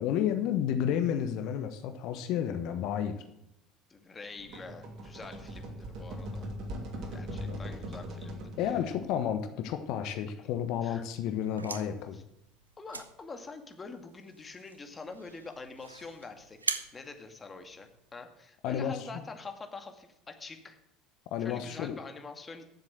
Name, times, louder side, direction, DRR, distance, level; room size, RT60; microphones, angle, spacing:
voice 1, 0.0-3.2 7.4-7.6 8.6-12.2 18.6-19.1 21.3-21.9, left 9 dB, 60° left, 8 dB, 1.2 m, -31 dB
voice 2, 3.9-6.5 7.1-8.5 10.4-10.5 10.8-11.0 12.1-12.2 12.8-20.8 21.4-22.6, left 4 dB, 25° left, 5 dB, 2.0 m, -45 dB
sound 1, 4.3-9.2, equal, 55° right, 2.6 m, -40 dB
sound 2, 11.3-18.1, right 4 dB, 90° right, 0.6 m, -42 dB
10.5 x 7.5 x 7.8 m, 0.79 s
figure-of-eight pair, 65°, 0 cm